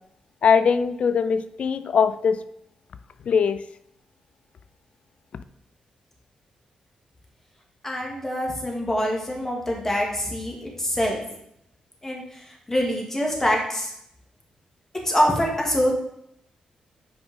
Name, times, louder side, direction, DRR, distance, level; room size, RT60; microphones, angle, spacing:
voice 1, 0.4-2.4 3.3-3.6, left 6 dB, 65° left, 13 dB, 0.4 m, -21 dB
voice 2, 7.8-11.2 12.0-13.9 15.0-15.9, equal, 20° left, -1 dB, 2.1 m, -25 dB
7.9 x 5.0 x 3.7 m, 0.75 s
cardioid pair, 80°, 2 cm